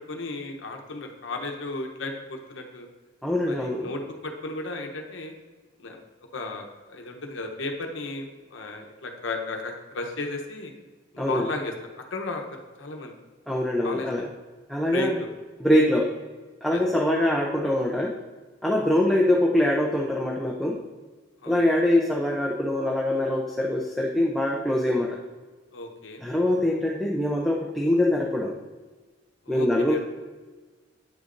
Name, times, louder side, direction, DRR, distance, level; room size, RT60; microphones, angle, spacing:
voice 1, 0.1-2.9 3.5-5.3 5.8-6.0 6.3-6.6 6.9-10.7 11.1-11.7 12.1-13.1 13.8-14.2 14.9-15.3 16.7-16.8 21.4-21.7 25.7-26.2 29.5-30.0, left 2 dB, 75° left, 3 dB, 0.9 m, -34 dB
voice 2, 3.2-3.9 11.2-11.5 13.5-14.3 14.7-15.2 15.6-16.1 16.6-18.1 18.6-20.8 21.5-25.2 26.2-28.5 29.5-30.0, left 1 dB, ahead, -2 dB, 0.5 m, -23 dB
8.7 x 6.6 x 2.6 m, 1.3 s
head